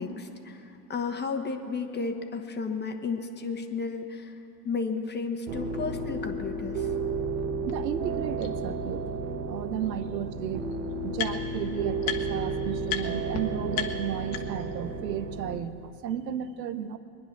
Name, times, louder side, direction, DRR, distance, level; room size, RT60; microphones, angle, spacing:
voice 1, 0.0-6.9 9.9-10.0, left 4 dB, 20° left, 6 dB, 1.3 m, -33 dB
sound 1, 5.5-15.6, right 3 dB, 60° right, 1.4 m, -32 dB
sound 2, 7.7-7.8 8.4-8.5 9.8-9.9 10.1-11.6 12.0-12.5 12.9-13.0 13.3-13.4 13.7-14.7, left 10 dB, 60° left, 1.5 m, -35 dB
voice 2, 7.7-9.1 9.5-17.0, right 9 dB, 90° right, 11 dB, 1.0 m, -34 dB
23.0 x 10.0 x 6.1 m, 2.9 s
hypercardioid pair, 105°, 49 cm